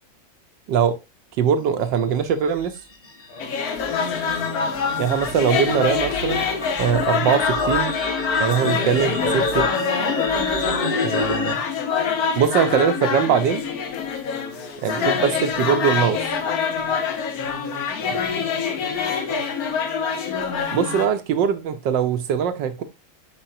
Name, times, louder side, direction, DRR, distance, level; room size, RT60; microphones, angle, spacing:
voice 1, 1.4-2.8 5.0-6.5 6.8-7.9 8.4-9.7 11.0-11.6 12.4-13.6 14.8-16.2 20.7-22.8, right 7 dB, 70° right, 1.3 m, -21 dB
sound 1, 2.3-11.5, left 2 dB, 30° left, 1.1 m, -29 dB
voice 2, 3.3-4.3 14.3-15.3 16.8-19.6, left 2 dB, 85° left, 5.1 m, -41 dB
sound 2, 3.4-21.1, left 6 dB, 55° left, 1.3 m, -25 dB
8.7 x 5.0 x 2.6 m
omnidirectional pair, 2.2 m